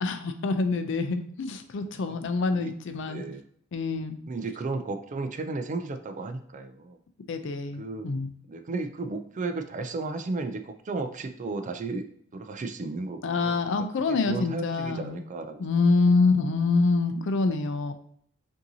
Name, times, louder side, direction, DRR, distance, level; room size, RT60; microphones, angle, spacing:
voice 1, 0.0-3.2 3.7-4.2 7.3-8.3 13.2-15.2 15.6-17.9, left 3 dB, 65° left, 9 dB, 0.4 m, -26 dB
voice 2, 3.0-3.4 4.3-7.0 7.8-8.1 8.5-13.6 14.1-15.6 16.2-16.3, right 3 dB, 40° right, 7 dB, 0.4 m, -34 dB
5.3 x 2.7 x 2.7 m, 0.63 s
head